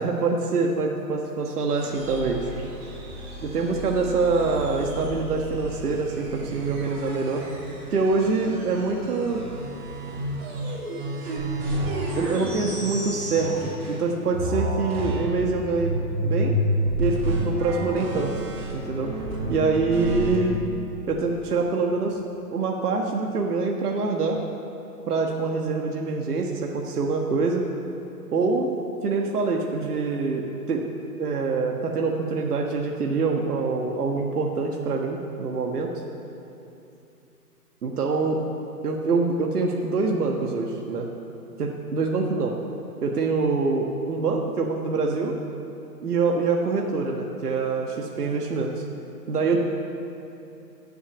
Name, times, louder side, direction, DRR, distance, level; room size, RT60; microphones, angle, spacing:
voice 1, 0.0-2.5 3.4-7.4 7.9-9.4 12.1-15.9 16.2-16.5 17.0-18.3 18.7-19.1 19.5-20.6 21.1-22.2 22.5-24.4 25.1-27.6 28.3-28.7 29.0-30.8 31.2-35.9 37.8-38.4 38.8-41.1 41.6-42.6 43.0-45.3 46.0-48.8 49.3-49.6, right 4 dB, 70° right, 1 dB, 1.5 m, -25 dB
sound 1, 1.8-14.0 14.3-20.4, right 1 dB, 40° right, 3.1 m, -30 dB
14.5 x 7.1 x 8.7 m, 2.8 s
hypercardioid pair, 155°, 48 cm